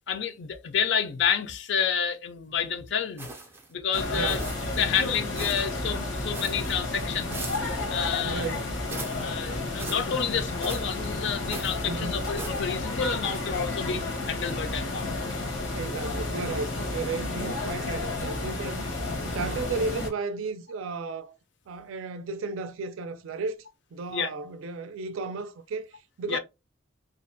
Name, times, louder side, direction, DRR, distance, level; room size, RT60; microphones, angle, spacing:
voice 1, 0.1-3.3 3.7-4.4 4.8-7.4 7.7-8.5 9.1-15.1 24.1-24.3 26.3-26.4, left 7 dB, 60° left, 0.4 m, -29 dB
sound 1, 3.2-3.7 4.3-4.8 5.4-5.8 6.3-6.8 7.3-7.8 8.9-9.3 9.8-10.1 10.6-11.0 11.5-11.8 12.4-12.7, right 2 dB, 10° right, 0.4 m, -40 dB
sound 2, 3.9-20.1, left 2 dB, 85° left, 0.9 m, -32 dB
voice 2, 4.1-4.5 8.2-8.7 11.8-12.3 15.7-21.4 21.7-23.6 23.9-26.4, right 4 dB, 85° right, 0.4 m, -34 dB
2.4 x 2.1 x 2.5 m
head